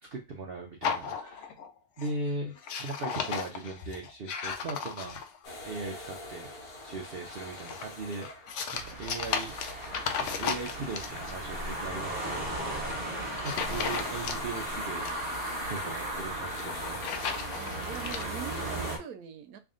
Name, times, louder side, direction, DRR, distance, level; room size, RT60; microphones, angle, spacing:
voice 1, 0.1-1.5 2.0-5.2 5.6-6.5 6.8-8.3 8.7-9.5 10.2-12.9 13.4-15.1 15.7-17.4, right 3 dB, 55° right, 0.7 m, -39 dB
sound 1, 0.8-1.7 2.0-2.3 2.6-5.5 7.3-11.3 12.7-12.9 13.4-14.6 14.9-15.9 16.5-18.2, left 6 dB, 65° left, 0.8 m, -35 dB
sound 2, 5.4-19.0, left 2 dB, 90° left, 1.6 m, -44 dB
sound 3, 8.8-19.0, right 1 dB, 30° right, 1.3 m, -36 dB
voice 2, 17.5-19.6, right 7 dB, 90° right, 1.1 m, -42 dB
3.4 x 2.6 x 3.6 m
omnidirectional pair, 1.5 m